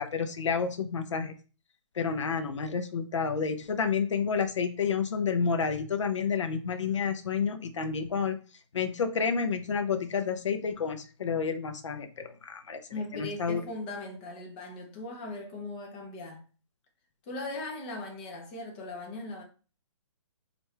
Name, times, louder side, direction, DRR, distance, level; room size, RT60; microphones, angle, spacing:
voice 1, 0.0-1.3 2.0-8.4 8.7-12.8 13.1-13.6, left 6 dB, 70° left, 0.7 m, -30 dB
voice 2, 12.9-16.4 17.3-19.4, left 2 dB, 20° left, 0.7 m, -39 dB
4.5 x 2.5 x 3.2 m
hypercardioid pair, 165°, 16 cm